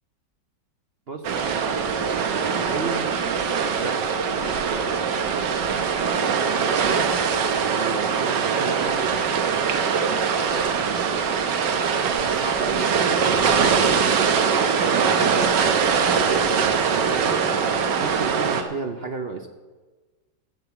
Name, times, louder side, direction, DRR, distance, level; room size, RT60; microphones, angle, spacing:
voice 1, 1.1-3.1 3.8-4.0 4.3-7.1 7.7-11.0 12.0-14.1 14.8-17.4 18.0-19.5, right 4 dB, 50° right, 6 dB, 0.8 m, -35 dB
sound 1, 1.2-18.6, right 6 dB, 75° right, 1.7 m, -22 dB
13.5 x 8.9 x 7.0 m, 1.3 s
omnidirectional pair, 1.9 m